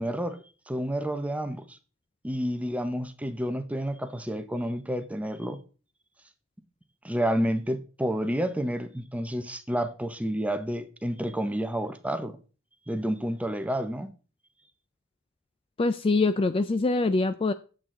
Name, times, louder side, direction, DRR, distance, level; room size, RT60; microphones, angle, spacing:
voice 1, 0.0-1.8 2.2-5.6 7.0-12.4 12.9-14.1, equal, 5° right, 0.8 m, -30 dB
voice 2, 15.8-17.5, left 3 dB, 25° left, 0.4 m, -24 dB
8.7 x 7.5 x 3.8 m
head